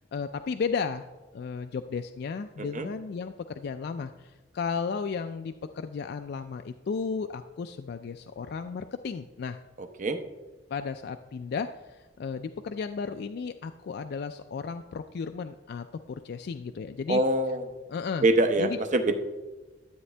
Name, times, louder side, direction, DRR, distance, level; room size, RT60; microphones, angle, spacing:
voice 1, 0.1-1.1 1.3-9.6 10.7-17.2 17.9-18.3 18.6-18.8, left 5 dB, 60° left, 7 dB, 0.3 m, -34 dB
voice 2, 2.6-2.9 9.8-10.2 17.1-17.7 18.2-19.2, right 2 dB, 45° right, 8 dB, 0.7 m, -25 dB
12.5 x 8.1 x 3.3 m, 1.2 s
head